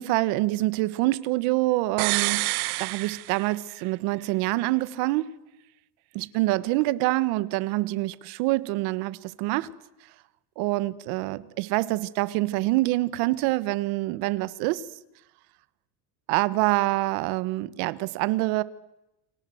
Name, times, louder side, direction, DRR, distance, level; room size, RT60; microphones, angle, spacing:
voice 1, 0.0-2.5 2.8-5.3 6.1-9.7 10.6-14.9 16.3-18.6, right 19 dB, 60° right, 1.4 m, -26 dB
sound 1, 2.0-3.9 4.2-4.3, right 24 dB, 85° right, 1.0 m, -28 dB
29.5 x 24.5 x 7.9 m
cardioid pair, 175°, 43 cm